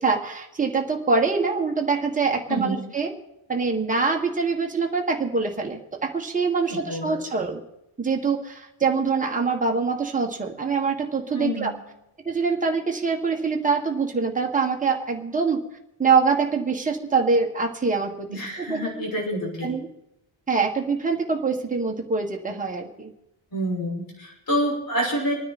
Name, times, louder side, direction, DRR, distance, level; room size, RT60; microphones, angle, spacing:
voice 1, 0.0-3.1 3.5-7.6 8.0-11.7 12.2-15.6 16.0-18.3 18.7-19.0 19.6-19.9 20.5-23.1, right 4 dB, 15° right, 1 dB, 1.5 m, -24 dB
voice 2, 2.5-2.8 6.7-7.4 11.4-11.7 18.3-19.7 23.5-25.3, equal, 45° left, -3 dB, 6.2 m, -28 dB
26.0 x 9.7 x 4.2 m, 0.85 s
wide cardioid pair, 175°, 49 cm